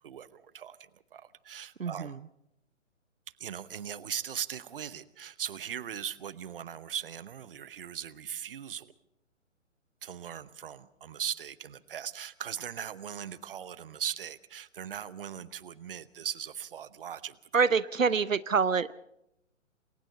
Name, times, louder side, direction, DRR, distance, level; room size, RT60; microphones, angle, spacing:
voice 1, 0.0-2.2 3.4-8.9 10.0-17.4, right 9 dB, 45° right, 17 dB, 1.0 m, -39 dB
voice 2, 1.8-2.1 17.5-18.9, right 5 dB, 85° right, 18 dB, 0.7 m, -26 dB
28.0 x 22.5 x 4.3 m, 0.80 s
figure-of-eight pair, 135°, 38 cm